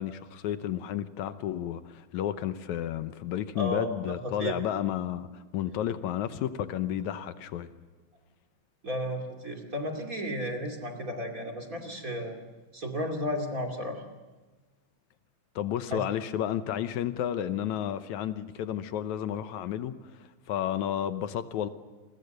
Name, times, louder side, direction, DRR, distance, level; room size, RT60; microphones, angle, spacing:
voice 1, 0.0-7.7 15.6-20.0 20.5-21.7, left 10 dB, 80° left, 2.3 m, -32 dB
voice 2, 3.5-4.6 8.8-12.4 12.7-14.0 15.9-16.0, equal, 30° right, 2.8 m, -33 dB
29.0 x 22.5 x 6.7 m
omnidirectional pair, 3.3 m